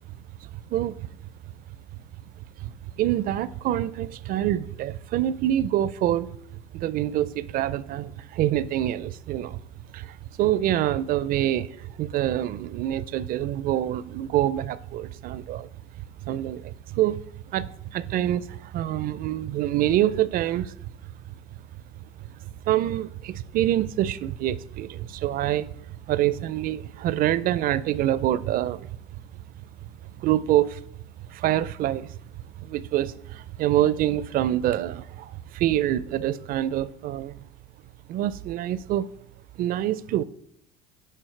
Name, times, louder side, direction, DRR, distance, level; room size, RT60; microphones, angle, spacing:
voice 1, 0.7-1.1 2.6-6.3 6.7-9.6 9.9-15.7 16.2-17.2 17.5-20.7 22.7-25.7 26.1-28.9 30.2-30.8 31.3-32.1 32.6-37.4 38.1-39.1 39.6-40.2, right 12 dB, 50° right, 0.4 m, -26 dB
9.9 x 4.3 x 3.2 m
supercardioid pair, 90°, 19 cm